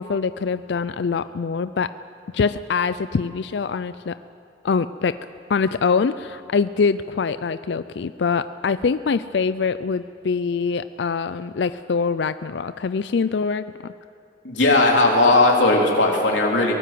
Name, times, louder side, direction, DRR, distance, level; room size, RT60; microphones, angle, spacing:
voice 1, 0.0-1.9 2.3-4.2 4.6-5.1 5.5-13.9, left 5 dB, 70° left, 13 dB, 0.4 m, -24 dB
voice 2, 14.4-16.7, left 2 dB, 85° left, 0 dB, 3.6 m, -17 dB
23.0 x 18.0 x 7.7 m, 2.6 s
head